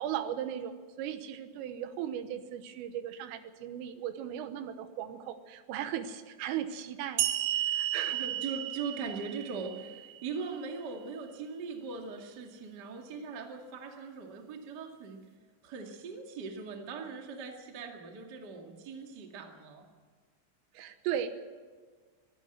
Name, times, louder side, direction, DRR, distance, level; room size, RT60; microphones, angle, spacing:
voice 1, 0.0-8.3 20.8-21.3, right 10 dB, 85° right, 10 dB, 3.7 m, -37 dB
sound 1, 7.2-10.6, right 12 dB, 70° right, 3.0 m, -33 dB
voice 2, 8.1-15.2 15.6-19.8, right 5 dB, 45° right, 2 dB, 1.2 m, -40 dB
24.0 x 13.5 x 8.0 m, 1.5 s
omnidirectional pair, 5.8 m